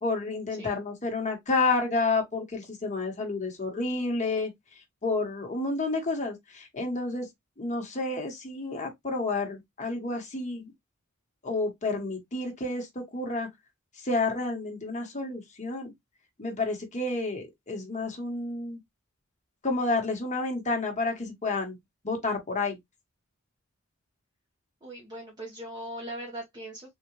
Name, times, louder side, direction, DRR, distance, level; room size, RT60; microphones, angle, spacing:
voice 1, 0.0-4.5 5.0-7.3 7.6-10.7 11.4-13.5 14.0-15.9 16.4-18.8 19.6-21.8 22.0-22.8, left 3 dB, 35° left, 1.1 m, -30 dB
voice 2, 24.8-26.9, right 1 dB, 20° right, 1.0 m, -40 dB
3.6 x 2.4 x 3.0 m
head